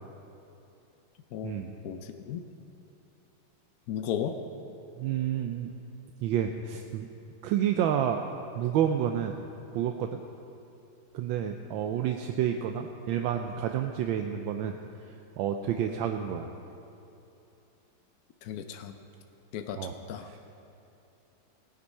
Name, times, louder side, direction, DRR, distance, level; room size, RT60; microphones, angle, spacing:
voice 1, 1.8-2.4 3.9-4.4 18.4-19.0 19.5-20.3, left 9 dB, 70° left, 7 dB, 0.9 m, -35 dB
voice 2, 5.0-5.7 6.2-7.1 7.4-8.2 8.5-9.3 9.7-10.2 11.1-14.7 15.4-16.5 19.8-19.9, right 9 dB, 85° right, 5 dB, 1.4 m, -29 dB
16.0 x 9.9 x 5.5 m, 2.9 s
omnidirectional pair, 2.1 m